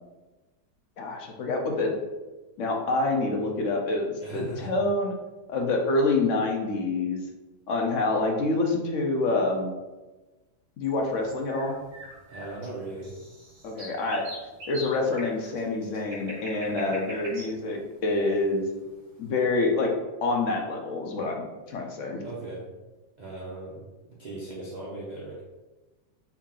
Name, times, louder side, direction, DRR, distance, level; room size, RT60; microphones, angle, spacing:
voice 1, 1.0-1.9 2.6-5.2 5.5-7.2 7.7-9.7 10.8-11.8 13.6-14.2 14.7-18.6 19.2-19.9 20.2-22.2, left 2 dB, 65° left, 1 dB, 0.8 m, -27 dB
voice 2, 4.2-4.7 12.3-13.2 16.6-17.0 22.2-22.7 23.2-25.4, right 2 dB, 45° right, -5 dB, 0.6 m, -38 dB
sound 1, 10.8-19.1, equal, 65° right, 1.8 m, -43 dB
4.6 x 2.9 x 3.7 m, 1.2 s
omnidirectional pair, 1.8 m